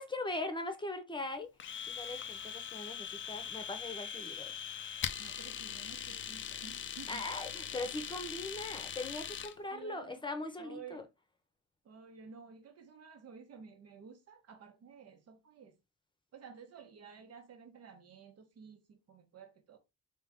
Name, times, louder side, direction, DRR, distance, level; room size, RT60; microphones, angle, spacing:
voice 1, 0.0-1.5 1.9-4.5 7.1-11.0, left 2 dB, 15° left, 0.9 m, -40 dB
Domestic sounds home sounds, 1.6-9.5, left 8 dB, 40° left, 0.4 m, -41 dB
voice 2, 5.2-7.3 9.7-10.2 10.6-11.1 11.8-15.7 16.3-19.8, right 6 dB, 55° right, 1.0 m, -53 dB
3.6 x 3.0 x 3.6 m
cardioid pair, 90°, 30 cm